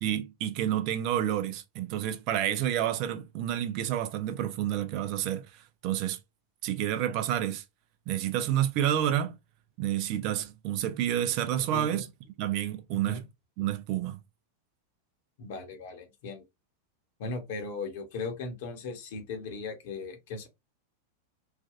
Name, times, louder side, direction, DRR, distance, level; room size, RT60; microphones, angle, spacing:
voice 1, 0.0-5.4 5.8-6.2 6.6-7.6 8.1-9.4 9.8-12.1 12.4-13.2 13.6-14.2, right 11 dB, 45° right, 0.5 m, -29 dB
voice 2, 11.7-12.0 12.9-13.2 15.4-16.4 17.2-20.5, left 3 dB, 50° left, 1.0 m, -38 dB
3.3 x 2.3 x 2.4 m
figure-of-eight pair, 90°, 0 cm